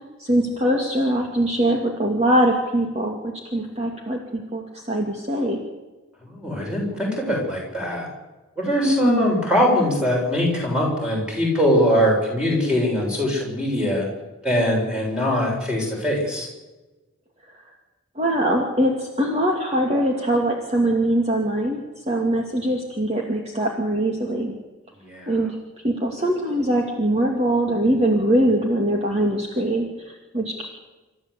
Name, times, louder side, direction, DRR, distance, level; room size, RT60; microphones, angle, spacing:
voice 1, 0.2-5.6 8.8-9.3 18.2-24.6 25.3-25.6 25.8-30.6, right 1 dB, 30° right, 1 dB, 2.4 m, -22 dB
voice 2, 6.2-8.1 8.6-14.1 14.4-16.5 25.0-25.3, equal, 5° right, -2 dB, 7.0 m, -22 dB
28.0 x 14.0 x 8.3 m, 1.2 s
head